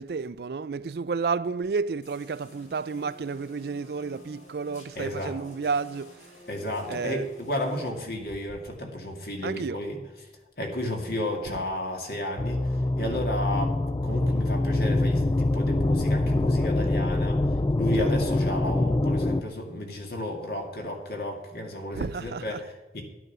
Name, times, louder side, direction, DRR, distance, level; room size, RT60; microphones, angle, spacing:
voice 1, 0.0-6.1 6.9-7.3 9.4-9.8 13.0-13.2 18.0-18.1 21.9-22.6, right 5 dB, 60° right, 0.4 m, -31 dB
sound 1, 2.0-7.9, left 1 dB, 40° left, 2.4 m, -51 dB
voice 2, 5.0-5.4 6.5-10.0 10.6-23.0, left 1 dB, 55° left, 2.3 m, -32 dB
sound 2, 12.4-19.4, left 2 dB, 20° left, 0.3 m, -25 dB
12.0 x 9.3 x 6.0 m
head